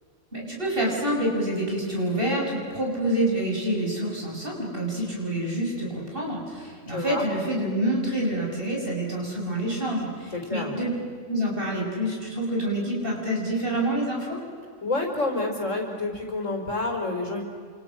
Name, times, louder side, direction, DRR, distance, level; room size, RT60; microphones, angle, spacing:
voice 1, 0.3-10.9 11.3-14.4, right 1 dB, 45° right, -2 dB, 7.2 m, -27 dB
voice 2, 6.9-7.3 10.3-10.8 14.8-17.4, left 2 dB, 80° left, 2 dB, 5.3 m, -28 dB
29.0 x 27.0 x 6.4 m, 2.1 s
omnidirectional pair, 1.3 m